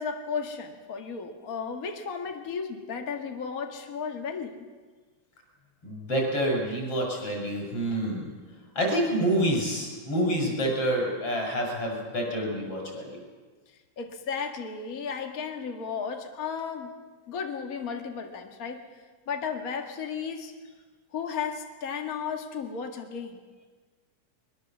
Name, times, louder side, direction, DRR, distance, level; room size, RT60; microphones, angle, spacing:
voice 1, 0.0-4.6 14.0-16.9 17.3-18.8 19.3-20.5 21.1-23.4, left 6 dB, 60° left, 4 dB, 0.8 m, -34 dB
voice 2, 5.8-8.3 8.7-13.2, right 1 dB, 35° left, 0 dB, 6.9 m, -27 dB
22.0 x 22.0 x 7.3 m, 1.4 s
omnidirectional pair, 4.5 m